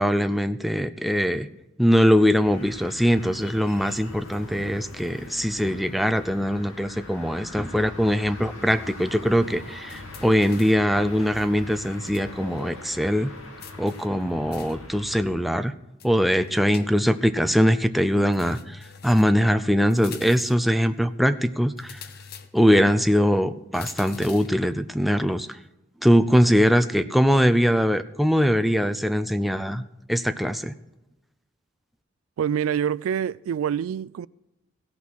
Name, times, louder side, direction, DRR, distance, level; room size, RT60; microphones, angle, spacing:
voice 1, 0.0-1.5 1.8-13.3 13.8-15.7 16.0-22.0 22.5-25.6 26.0-29.8 30.1-30.7, equal, ahead, 0.4 m, -22 dB
sound 1, 2.4-15.2, left 1 dB, 85° left, 2.5 m, -42 dB
sound 2, 9.9-10.9 11.4-12.3 12.6-12.7 13.6-14.9 16.0-17.3 18.3-19.4 19.9-20.7 21.8-22.8 23.7-24.6, left 5 dB, 50° left, 0.8 m, -44 dB
voice 2, 32.4-34.3, right 8 dB, 85° right, 0.3 m, -26 dB
16.5 x 5.9 x 6.2 m
head